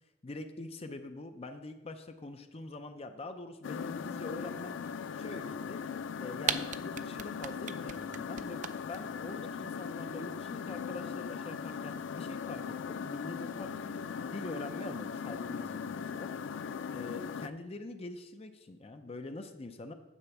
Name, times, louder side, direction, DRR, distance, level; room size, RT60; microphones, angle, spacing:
voice 1, 0.2-4.8 5.2-5.8 6.2-16.3 16.9-19.9, left 2 dB, 35° left, 7 dB, 0.6 m, -44 dB
sound 1, 3.6-17.5, left 6 dB, 85° left, 0.4 m, -39 dB
sound 2, 6.1-6.2 6.4-9.0, right 8 dB, 40° right, 0.4 m, -34 dB
9.9 x 4.5 x 7.1 m, 1.1 s
head